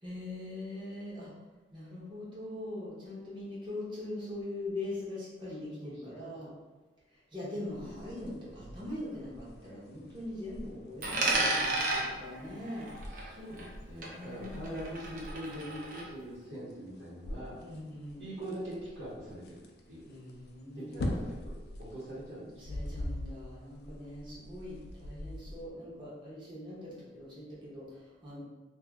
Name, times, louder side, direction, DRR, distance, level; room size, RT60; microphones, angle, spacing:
voice 1, 0.0-1.3 1.7-6.5 7.1-12.9 14.0-14.7 17.6-18.2 20.1-21.3 22.6-28.4, left 1 dB, 25° right, -7 dB, 1.0 m, -42 dB
voice 2, 5.8-6.1 13.1-17.6 18.2-20.0 20.7-22.9, equal, 85° right, -12 dB, 1.4 m, -43 dB
sound 1, 7.7-25.7, left 1 dB, 60° left, 0.4 m, -44 dB
Coin (dropping), 11.0-13.8 14.0-16.0, right 2 dB, 45° right, 0.6 m, -33 dB
2.7 x 2.5 x 3.5 m, 1.2 s
head